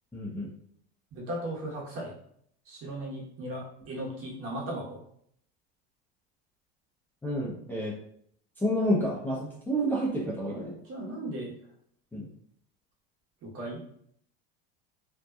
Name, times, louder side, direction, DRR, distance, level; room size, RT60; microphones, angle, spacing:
voice 1, 0.1-0.5 7.2-7.9 8.6-10.7 12.1-12.3, equal, 5° left, -5 dB, 0.5 m, -29 dB
voice 2, 1.1-2.1 2.7-5.0 10.5-11.6 13.4-13.8, right 1 dB, 50° right, -3 dB, 1.1 m, -37 dB
2.7 x 2.2 x 2.3 m, 0.67 s
supercardioid pair, 105°, 30 cm